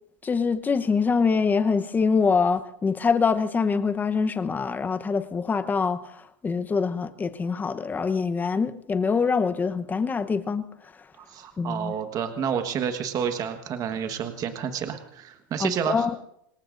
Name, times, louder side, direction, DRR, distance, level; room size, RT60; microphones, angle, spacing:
voice 1, 0.2-6.0 6.4-10.7 11.6-11.9 15.6-16.1, left 5 dB, 15° left, 11 dB, 0.9 m, -24 dB
voice 2, 11.2-16.1, right 7 dB, 35° right, 7 dB, 1.4 m, -30 dB
26.5 x 19.5 x 2.6 m, 0.76 s
supercardioid pair, 125°, 11 cm